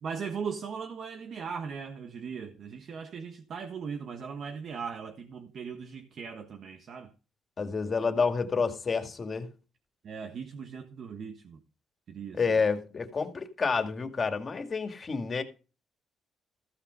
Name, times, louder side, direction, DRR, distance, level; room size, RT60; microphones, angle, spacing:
voice 1, 0.0-7.1 10.0-11.6 12.1-12.4, right 6 dB, 60° right, 1.4 m, -38 dB
voice 2, 7.6-9.5 12.3-15.4, left 5 dB, 40° left, 2.3 m, -29 dB
15.0 x 5.9 x 5.4 m
cardioid pair, 90°, 0 cm